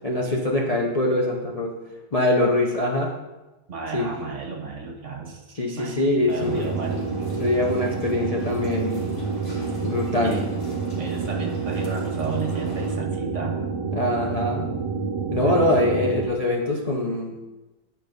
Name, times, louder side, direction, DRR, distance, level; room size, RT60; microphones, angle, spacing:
voice 1, 0.0-1.8 2.1-3.1 3.9-4.1 5.3-6.7 7.3-9.1 9.8-10.4 13.9-14.7 15.3-17.4, left 1 dB, 65° left, 0 dB, 0.3 m, -23 dB
voice 2, 3.7-5.3 5.7-7.0 10.2-10.5 11.0-13.6 15.2-15.7, right 4 dB, 45° right, 1 dB, 1.4 m, -32 dB
sound 1, 6.3-13.0, left 1 dB, 40° left, 2.0 m, -42 dB
sound 2, 6.4-16.2, right 4 dB, 20° right, 0.8 m, -28 dB
9.9 x 4.9 x 5.2 m, 1.1 s
omnidirectional pair, 1.9 m